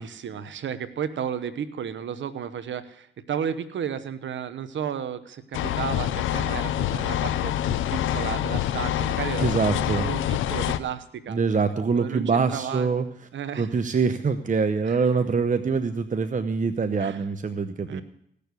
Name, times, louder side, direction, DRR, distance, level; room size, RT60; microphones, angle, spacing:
voice 1, 0.0-11.4 11.9-12.9 13.3-13.8 14.9-15.0 17.0-17.3 17.9-18.0, right 8 dB, 70° right, 12 dB, 1.1 m, -33 dB
sound 1, 5.5-10.8, left 11 dB, 85° left, 0.6 m, -26 dB
voice 2, 9.4-10.1 11.3-13.0 13.5-18.0, right 5 dB, 40° right, 9 dB, 0.9 m, -24 dB
17.0 x 6.8 x 8.3 m, 0.70 s
supercardioid pair, 50°, 20 cm